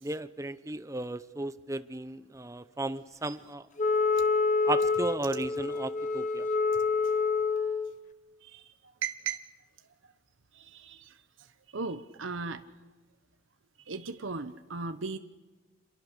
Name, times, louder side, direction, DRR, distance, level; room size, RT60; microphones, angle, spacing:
voice 1, 0.0-3.6 4.7-6.5, right 2 dB, 15° right, 13 dB, 0.7 m, -35 dB
Wind instrument woodwind instrument, 3.8-7.9, left 4 dB, 40° left, 1.2 m, -27 dB
voice 2, 9.0-9.4 10.5-11.2 11.7-12.6 13.9-15.2, right 4 dB, 85° right, 8 dB, 1.0 m, -37 dB
27.5 x 23.0 x 6.7 m, 1.2 s
head